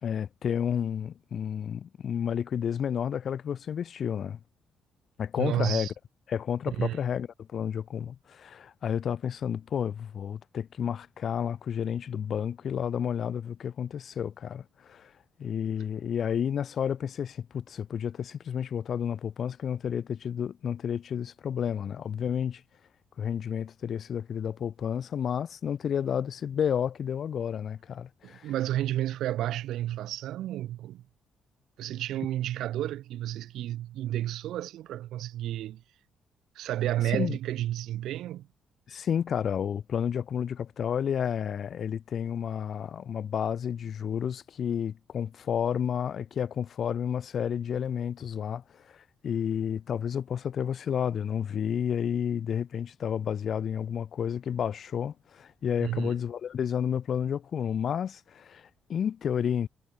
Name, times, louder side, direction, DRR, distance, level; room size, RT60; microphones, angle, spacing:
voice 1, 0.0-4.4 5.2-5.9 6.3-15.1 15.4-22.6 23.2-28.5 37.0-37.4 38.9-59.7, left 8 dB, 60° left, 1.4 m, -31 dB
voice 2, 5.4-5.9 6.8-7.0 28.2-31.0 31.8-35.8 36.6-38.5 55.8-56.1, right 13 dB, 85° right, 0.7 m, -31 dB
cardioid pair, 90°, 0 cm